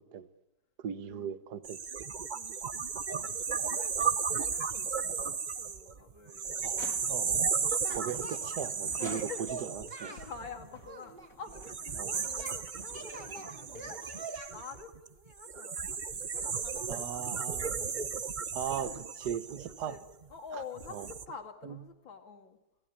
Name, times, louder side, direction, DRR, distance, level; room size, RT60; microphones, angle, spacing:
voice 1, 0.8-1.8 6.6-7.4 7.9-9.2 10.0-10.1 12.0-12.1 16.9-18.1 18.5-18.9 19.2-20.0 20.9-21.1, right 9 dB, 60° right, 12 dB, 1.6 m, -38 dB
sound 1, 1.6-10.9 11.5-20.2 20.7-21.2, right 6 dB, 45° right, 0.6 m, -35 dB
voice 2, 2.3-7.1 9.0-9.5 10.1-14.1 14.5-17.6 18.8-19.0 19.7-20.0 20.3-22.6, left 6 dB, 80° left, 4 dB, 3.2 m, -48 dB
sound 2, 6.6-7.5 8.0-9.7 10.4-14.0, left 5 dB, 45° left, 2.2 m, -54 dB
Singing, 7.8-8.7 9.0-10.3 10.8-12.6 12.9-14.5, right 3 dB, 25° right, 3.4 m, -44 dB
28.5 x 17.5 x 8.6 m, 0.98 s
omnidirectional pair, 2.1 m